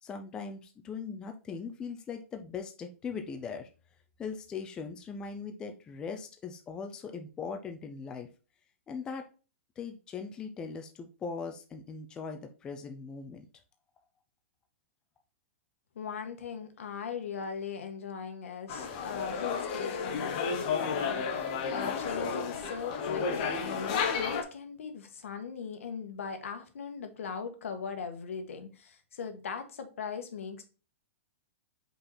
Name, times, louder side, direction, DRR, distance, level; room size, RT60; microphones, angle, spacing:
voice 1, 0.0-3.7 4.2-8.3 8.9-9.2 9.8-13.4, left 5 dB, 10° left, 0.5 m, -40 dB
voice 2, 15.9-30.6, left 6 dB, 80° left, 1.5 m, -39 dB
sound 1, 18.7-24.4, left 6 dB, 35° left, 1.0 m, -32 dB
5.4 x 4.3 x 4.2 m
hypercardioid pair, 170°, 7 cm